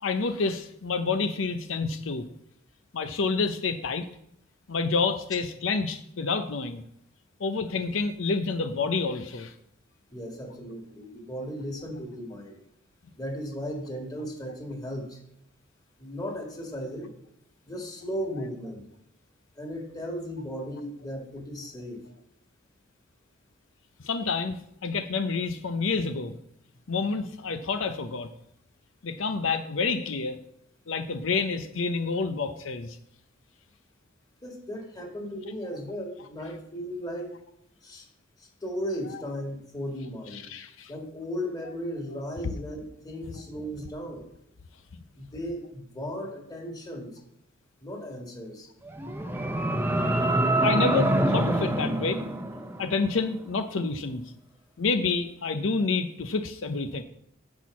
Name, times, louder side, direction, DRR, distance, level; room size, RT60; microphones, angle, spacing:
voice 1, 0.0-2.3 2.9-4.1 4.7-6.8 7.4-9.5 24.0-24.6 24.8-26.4 26.9-28.3 29.0-30.4 30.9-33.0 40.3-40.9 50.6-52.2 52.8-54.2 54.8-57.0, left 4 dB, 90° left, 9 dB, 0.6 m, -28 dB
voice 2, 10.1-12.6 13.2-15.2 16.0-17.1 17.7-18.8 19.6-22.0 34.4-37.3 37.8-38.1 38.4-40.5 40.9-44.3 45.2-47.2 47.8-48.7, equal, 20° left, 1 dB, 2.1 m, -36 dB
sound 1, 48.9-53.1, right 1 dB, 10° right, 0.7 m, -25 dB
10.5 x 4.5 x 7.1 m, 0.75 s
head